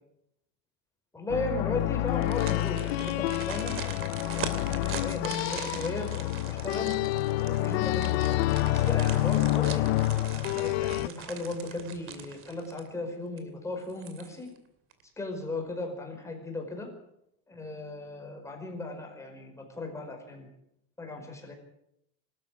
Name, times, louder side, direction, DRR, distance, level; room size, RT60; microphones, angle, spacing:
voice 1, 1.1-3.8 4.4-6.1 6.4-6.9 7.4-8.4 8.7-14.5 15.2-16.9 17.5-20.5 21.0-21.5, left 2 dB, 10° left, 2 dB, 5.0 m, -36 dB
sound 1, 1.3-11.1, left 17 dB, 90° left, 0.8 m, -28 dB
sound 2, 2.1-13.0 13.4-13.5 13.9-14.6 14.9-15.0, right 8 dB, 45° right, 2.6 m, -42 dB
24.0 x 13.5 x 8.7 m, 0.79 s
cardioid pair, 155°, 31 cm